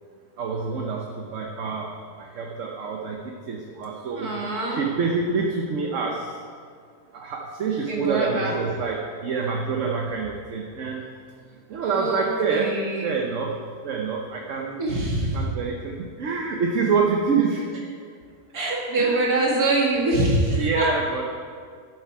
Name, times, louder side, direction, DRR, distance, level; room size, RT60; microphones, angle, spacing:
voice 1, 0.4-1.9 2.2-4.3 4.7-6.4 7.1-11.0 11.7-12.8 13.0-13.5 13.8-14.8 15.3-17.7 19.0-19.6 20.5-21.2, right 5 dB, 60° right, 0 dB, 1.1 m, -26 dB
voice 2, 4.2-4.9 7.9-8.5 11.8-13.1 14.8-15.5 18.5-20.9, right 2 dB, 85° right, -2 dB, 2.5 m, -24 dB
12.5 x 7.9 x 4.7 m, 2.1 s
omnidirectional pair, 1.6 m